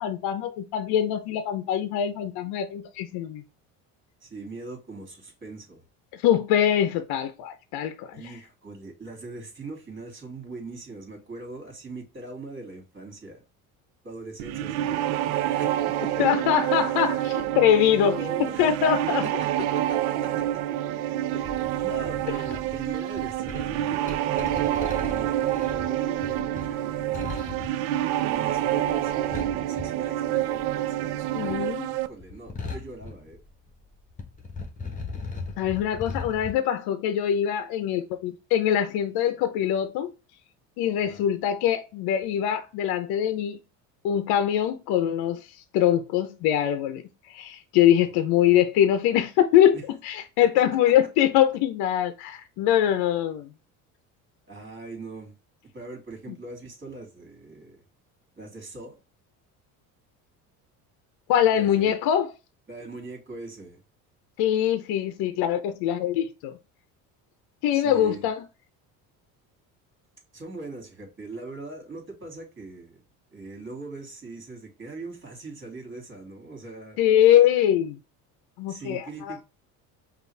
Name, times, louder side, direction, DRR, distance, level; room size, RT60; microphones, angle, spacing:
voice 1, 0.0-3.4 6.1-8.2 16.2-18.2 18.6-19.2 31.3-31.9 35.6-40.1 40.8-43.6 44.0-45.4 45.7-47.0 47.3-53.5 61.3-62.3 64.4-66.5 67.6-68.4 77.0-78.0 78.6-79.4, left 10 dB, 65° left, 0.7 m, -23 dB
voice 2, 4.2-5.8 8.1-13.4 14.0-15.7 16.0-16.4 18.0-18.6 19.2-20.4 21.3-27.5 28.2-33.4 41.0-41.3 48.0-48.2 49.7-49.8 50.6-50.7 54.5-55.3 55.7-57.8 58.4-59.0 61.5-61.9 62.7-63.8 67.7-68.3 70.3-73.0 73.3-77.0 78.7-79.4, right 3 dB, 30° right, 2.4 m, -41 dB
sound 1, 14.4-32.1, right 13 dB, 80° right, 0.5 m, -27 dB
sound 2, 21.4-30.7 31.0-33.8 34.1-36.5, left 3 dB, 20° left, 1.2 m, -38 dB
5.4 x 2.6 x 3.2 m
supercardioid pair, 80°, 41 cm